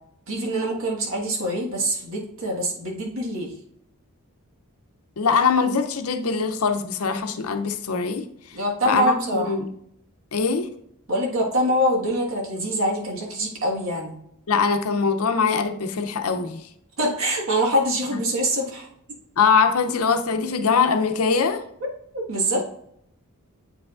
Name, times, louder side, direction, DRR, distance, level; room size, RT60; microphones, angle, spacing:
voice 1, 0.3-3.5 8.5-9.6 11.1-14.2 17.0-18.9 22.1-22.6, equal, 65° right, -1 dB, 1.6 m, -24 dB
voice 2, 5.2-8.2 8.8-9.7 10.3-10.7 14.5-16.6 19.4-21.6, left 5 dB, 75° left, 8 dB, 0.6 m, -22 dB
8.4 x 4.8 x 2.5 m, 0.71 s
head